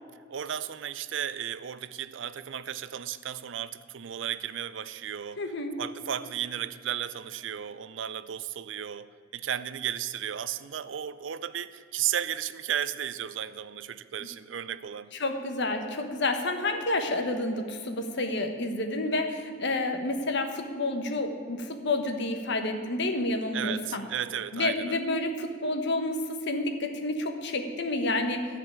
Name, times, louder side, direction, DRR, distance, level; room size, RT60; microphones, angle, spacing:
voice 1, 0.3-5.5 5.8-15.1 23.5-25.0, right 9 dB, 70° right, 15 dB, 0.5 m, -34 dB
voice 2, 5.4-5.7 14.2-14.3 15.2-24.0 24.5-26.2 26.5-28.5, left 2 dB, 65° left, 6 dB, 1.2 m, -29 dB
14.5 x 5.0 x 8.7 m, 2.1 s
head